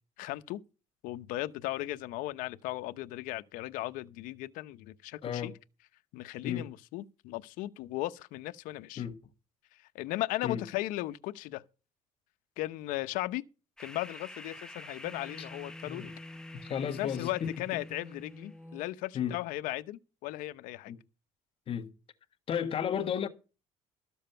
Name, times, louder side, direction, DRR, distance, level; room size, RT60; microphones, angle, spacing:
voice 1, 0.2-0.6 1.0-5.5 6.1-9.0 9.7-11.6 12.6-13.4 13.8-16.0 17.0-20.9, left 17 dB, 85° left, 0.8 m, -37 dB
voice 2, 5.2-5.5 6.4-6.7 9.0-9.1 10.4-10.6 15.9-16.1 16.6-17.5 19.1-19.4 20.9-21.0 21.7-21.9 22.5-23.3, left 8 dB, 40° left, 1.5 m, -33 dB
sound 1, 13.8-18.6, left 2 dB, 5° left, 0.9 m, -49 dB
sound 2, 15.0-18.9, left 1 dB, 15° right, 1.1 m, -48 dB
13.5 x 7.3 x 5.7 m
cardioid pair, 130°, 14 cm